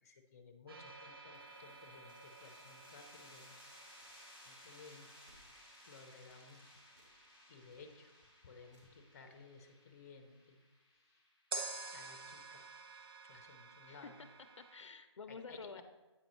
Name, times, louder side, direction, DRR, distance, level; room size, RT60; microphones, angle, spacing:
voice 1, 0.0-3.5 4.5-5.2 5.8-6.7 7.5-8.1 8.4-10.6 11.9-12.6 13.3-14.2 15.3-15.8, left 4 dB, 35° left, 5 dB, 0.6 m, -57 dB
sound 1, 0.7-8.6 11.5-14.8, right 3 dB, 50° right, 0.8 m, -51 dB
sound 2, 1.3-12.7, left 1 dB, 5° right, 0.9 m, -61 dB
sound 3, 4.0-4.2 5.3-5.5 6.2-6.4 6.9-7.2 7.6-7.8 8.7-9.0, equal, 80° right, 2.1 m, -68 dB
voice 2, 13.9-14.3 14.6-15.8, left 4 dB, 80° left, 10 dB, 0.5 m, -50 dB
8.5 x 5.2 x 3.1 m, 1.2 s
hypercardioid pair, 160°, 15 cm